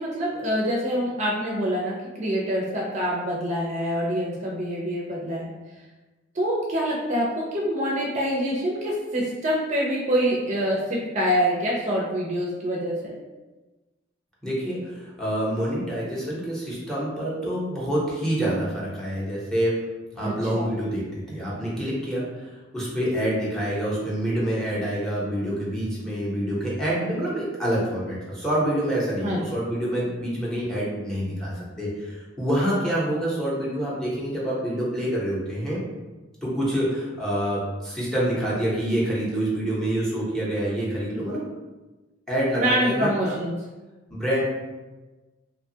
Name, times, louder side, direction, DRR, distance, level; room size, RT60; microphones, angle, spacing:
voice 1, 0.0-5.5 6.3-13.1 20.2-20.6 29.2-29.4 42.6-43.5, equal, 40° right, -4 dB, 0.5 m, -25 dB
voice 2, 14.4-19.7 20.1-35.8 36.4-41.5 42.3-43.1 44.1-44.4, right 1 dB, 5° left, -7 dB, 0.7 m, -27 dB
2.8 x 2.2 x 2.7 m, 1.2 s
head